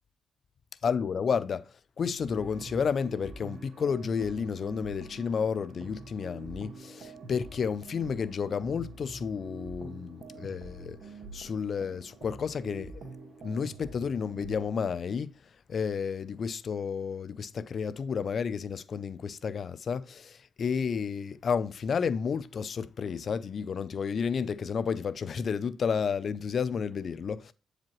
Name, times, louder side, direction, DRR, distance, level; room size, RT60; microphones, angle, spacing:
voice 1, 0.8-1.7 2.0-11.0 11.3-13.0 13.4-15.3 15.7-27.5, left 6 dB, 55° left, 0.4 m, -31 dB
sound 1, 2.2-15.0, right 2 dB, 65° right, 1.6 m, -46 dB
8.3 x 4.9 x 3.0 m
supercardioid pair, 65°, 0 cm